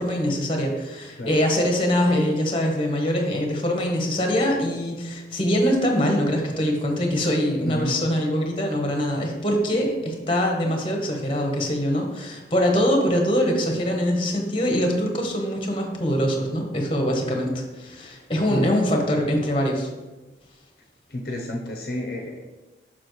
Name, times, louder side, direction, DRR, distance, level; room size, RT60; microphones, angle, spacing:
voice 1, 0.0-19.9, equal, 30° left, 2 dB, 1.1 m, -23 dB
voice 2, 7.6-8.0 18.5-18.7 21.1-22.4, left 1 dB, 55° left, 0 dB, 0.8 m, -29 dB
7.0 x 5.9 x 3.1 m, 1.1 s
head